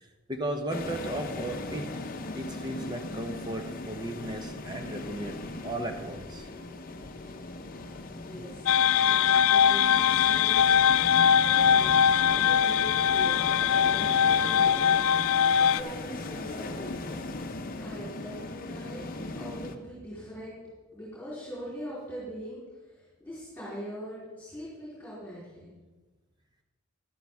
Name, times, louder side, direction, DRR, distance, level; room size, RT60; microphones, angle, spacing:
voice 1, 0.3-1.9 2.3-6.5, right 1 dB, 20° right, 4 dB, 0.7 m, -35 dB
sound 1, 0.7-19.8, left 2 dB, 45° left, 0.7 m, -38 dB
voice 2, 8.1-8.7 9.0-17.2 17.7-19.0 19.3-20.6 20.9-22.6 23.2-25.7, equal, 10° left, -9 dB, 3.8 m, -42 dB
sound 2, 8.7-15.8, left 8 dB, 75° left, 0.3 m, -22 dB
12.0 x 11.5 x 3.5 m, 1.2 s
head